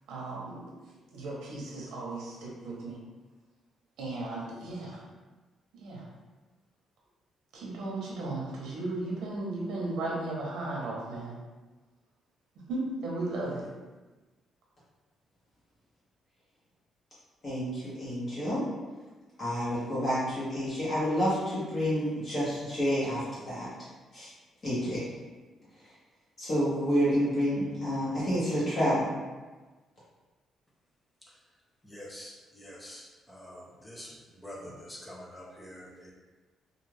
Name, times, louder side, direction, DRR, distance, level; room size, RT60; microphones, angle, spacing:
voice 1, 0.1-0.7 1.1-3.0 4.0-5.0 5.7-6.1 7.5-11.4 12.7-13.7, right 2 dB, 85° right, -3 dB, 0.7 m, -35 dB
voice 2, 17.4-18.6 19.4-23.7 24.1-24.3 24.6-25.0 26.4-29.1, equal, 35° left, -10 dB, 0.9 m, -29 dB
voice 3, 31.8-36.1, equal, 10° left, -3 dB, 0.5 m, -46 dB
2.4 x 2.3 x 3.2 m, 1.2 s
cardioid pair, 150°, 0 cm